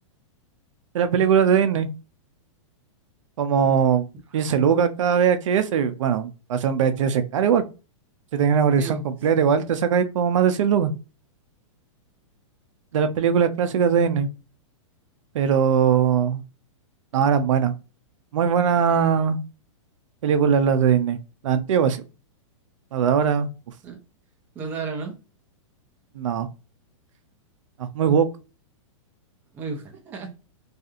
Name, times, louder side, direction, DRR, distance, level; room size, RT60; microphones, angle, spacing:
voice 1, 0.9-1.9 3.4-4.0 4.3-7.6 8.3-10.9 12.9-14.3 15.3-16.4 17.1-17.7 18.3-19.4 20.2-21.2 21.4-22.0 22.9-23.5 26.2-26.5 27.9-28.3, right 7 dB, 70° right, 0.5 m, -20 dB
voice 2, 24.6-25.1 29.5-30.4, right 4 dB, 10° right, 0.4 m, -33 dB
2.7 x 2.4 x 2.4 m
hypercardioid pair, 160°, 17 cm